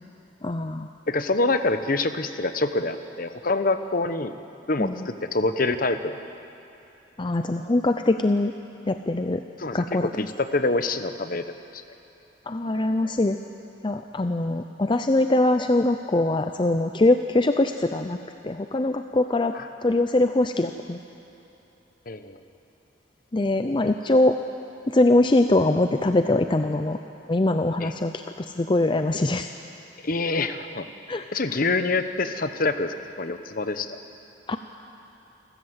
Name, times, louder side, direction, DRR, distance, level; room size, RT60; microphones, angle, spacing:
voice 1, 0.4-0.9 4.8-5.0 7.2-8.5 8.9-9.4 9.7-10.3 12.5-13.4 13.8-18.2 18.4-21.0 23.3-24.4 24.9-27.0 27.3-29.5 31.1-31.3 34.5-34.6, left 2 dB, 25° left, 7 dB, 0.5 m, -22 dB
voice 2, 1.1-4.3 4.7-6.2 9.6-11.4 11.7-11.8 19.5-19.7 22.1-22.4 27.8-27.9 30.0-30.9 31.3-34.0, left 3 dB, 50° left, 10 dB, 1.0 m, -26 dB
28.5 x 13.5 x 8.0 m, 2.9 s
head